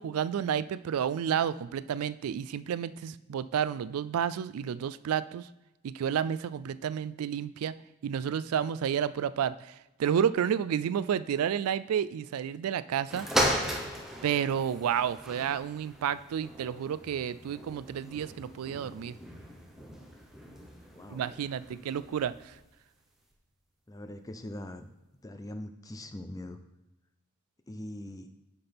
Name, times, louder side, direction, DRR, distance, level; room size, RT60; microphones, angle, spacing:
voice 1, 0.0-5.5 5.8-7.7 8.0-13.5 14.2-19.2 21.1-22.5, right 8 dB, 85° right, 17 dB, 0.3 m, -31 dB
sound 1, 13.1-22.6 23.3-23.4, equal, ahead, 0.9 m, -36 dB
voice 2, 23.9-24.9 25.2-26.6 27.7-28.3, left 1 dB, 15° left, 8 dB, 0.5 m, -41 dB
9.8 x 5.8 x 3.5 m, 0.97 s
head